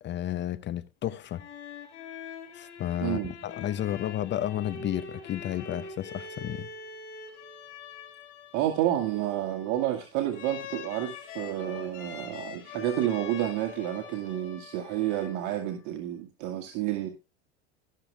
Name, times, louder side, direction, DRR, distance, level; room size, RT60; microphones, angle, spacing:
voice 1, 0.0-1.4 2.5-6.7, left 12 dB, 30° left, 0.6 m, -32 dB
sound 1, 1.1-15.7, left 6 dB, 75° left, 4.3 m, -44 dB
voice 2, 3.0-3.3 8.5-17.1, right 12 dB, 55° right, 2.0 m, -30 dB
17.0 x 6.8 x 3.5 m
hypercardioid pair, 100°, 35 cm